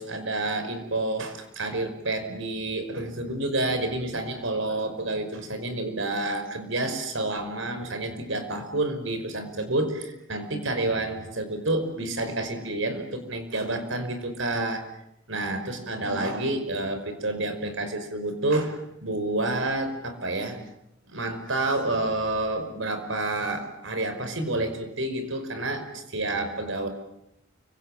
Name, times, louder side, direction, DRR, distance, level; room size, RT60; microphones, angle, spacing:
voice 1, 0.0-14.8 15.3-20.6 21.1-26.9, right 2 dB, 70° right, 8 dB, 5.4 m, -29 dB
29.5 x 25.5 x 7.4 m, 0.79 s
head